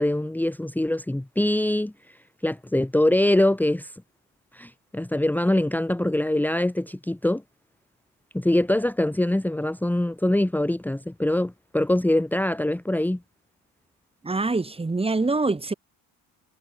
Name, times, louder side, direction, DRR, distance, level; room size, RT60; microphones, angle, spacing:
voice 1, 0.0-1.9 2.4-3.9 4.5-7.4 8.3-13.2, left 1 dB, 5° left, 1.9 m, -23 dB
voice 2, 14.2-15.7, right 3 dB, 15° right, 2.4 m, -24 dB
cardioid pair, 155°, 43 cm